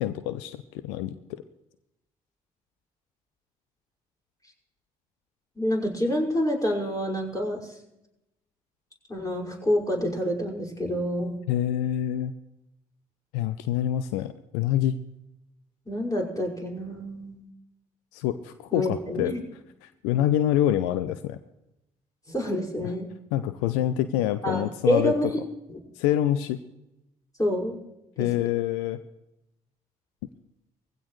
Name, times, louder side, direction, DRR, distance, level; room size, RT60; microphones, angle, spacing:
voice 1, 0.0-1.4 11.5-12.3 13.3-14.9 18.1-19.3 19.8-21.4 23.3-25.1 26.0-26.6 28.2-29.0, left 12 dB, 80° left, 12 dB, 0.6 m, -26 dB
voice 2, 5.6-7.8 9.1-11.4 15.9-17.5 18.7-19.4 22.3-23.1 24.4-25.3 25.7-25.8 27.4-27.8 28.2-28.5, equal, 20° left, -2 dB, 5.6 m, -28 dB
20.0 x 15.5 x 3.2 m, 0.89 s
hypercardioid pair, 45°, 19 cm